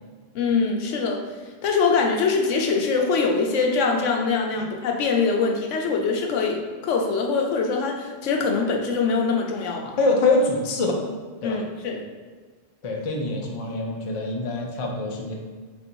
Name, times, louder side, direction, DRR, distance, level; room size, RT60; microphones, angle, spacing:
voice 1, 0.3-1.2 1.6-9.9 11.4-12.0, left 4 dB, 80° left, 1 dB, 1.0 m, -23 dB
voice 2, 10.0-11.0 11.4-11.6 12.8-15.4, left 2 dB, 40° left, 0 dB, 0.5 m, -24 dB
4.0 x 2.6 x 4.4 m, 1.4 s
omnidirectional pair, 1.2 m